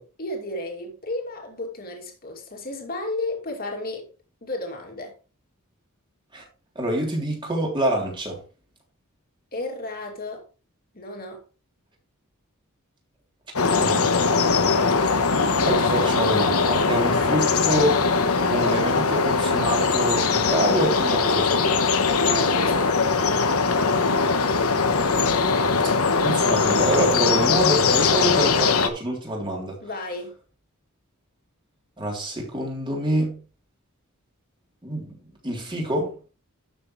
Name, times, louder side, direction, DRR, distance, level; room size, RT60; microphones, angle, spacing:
voice 1, 0.2-4.1 4.4-5.1 9.5-10.5 10.9-11.4 17.0-17.4 22.2-23.5 29.8-30.3, left 2 dB, 45° left, 2.6 m, -33 dB
voice 2, 6.7-8.4 13.7-14.7 15.6-21.8 26.1-29.8 32.0-33.4 34.8-36.1, right 1 dB, 20° right, 3.3 m, -27 dB
sound 1, 13.6-28.9, left 4 dB, 75° left, 1.1 m, -21 dB
12.5 x 6.7 x 3.2 m
head